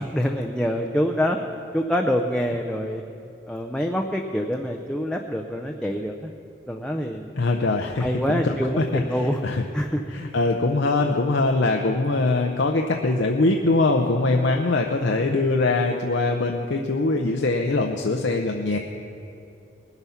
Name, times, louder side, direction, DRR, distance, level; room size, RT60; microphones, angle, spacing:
voice 1, 0.0-1.4 1.7-3.0 3.5-6.3 6.7-7.3 8.0-9.4 9.7-10.0, equal, 5° left, 2 dB, 0.5 m, -25 dB
voice 2, 7.4-9.6 10.1-18.8, left 2 dB, 70° left, 2 dB, 0.7 m, -22 dB
20.0 x 8.1 x 5.7 m, 2.8 s
head